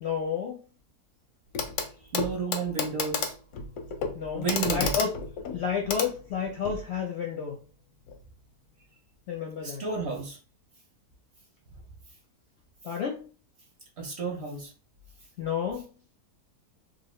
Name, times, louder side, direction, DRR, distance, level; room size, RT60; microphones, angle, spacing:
voice 1, 0.0-0.6 4.1-5.2 5.5-7.6 9.3-9.8 12.8-13.3 15.4-15.9, left 7 dB, 65° left, 0 dB, 0.7 m, -31 dB
Clock, 1.6-1.9 2.1-6.8 8.1-8.2, left 5 dB, 85° left, 1.1 m, -32 dB
voice 2, 2.1-3.3 4.3-4.9 9.6-10.4 14.0-14.7, right 5 dB, 55° right, 0 dB, 0.9 m, -32 dB
2.9 x 2.5 x 3.0 m, 0.36 s
omnidirectional pair, 1.6 m